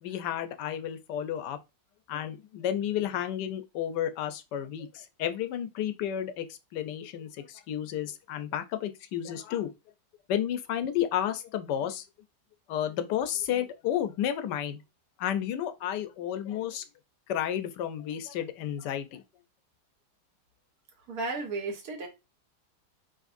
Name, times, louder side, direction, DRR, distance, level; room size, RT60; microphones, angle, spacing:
voice 1, 0.0-1.6 2.1-9.7 10.3-12.1 12.7-14.8 15.2-16.8 17.3-19.2, left 10 dB, 75° left, 1.2 m, -32 dB
voice 2, 21.1-22.1, right 3 dB, 60° right, 1.5 m, -33 dB
5.1 x 3.0 x 2.5 m
omnidirectional pair, 1.9 m